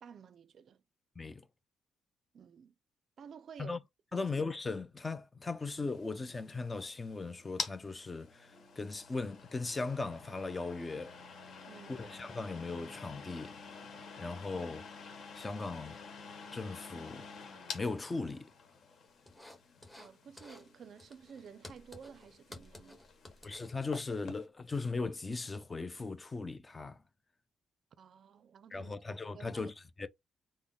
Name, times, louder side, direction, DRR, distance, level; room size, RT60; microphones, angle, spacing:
voice 1, 0.0-0.8 2.3-2.7 3.2-3.8 4.1-4.3 11.7-12.0 20.0-23.0 28.0-29.0 29.3-29.7 30.0-30.1, right 7 dB, 60° right, 0.4 m, -52 dB
voice 2, 1.2-1.5 3.6-3.8 4.1-11.2 11.9-13.6 14.2-14.9 15.3-16.0 16.5-17.3 17.7-18.5 23.4-27.0 28.7-30.1, left 3 dB, 25° left, 0.5 m, -38 dB
sound 1, 5.7-24.5, left 5 dB, 60° left, 1.2 m, -49 dB
sound 2, 19.3-20.1 20.4-20.7 21.0-24.2, left 1 dB, 10° left, 1.2 m, -53 dB
3.7 x 2.0 x 3.6 m
cardioid pair, 90°, 0 cm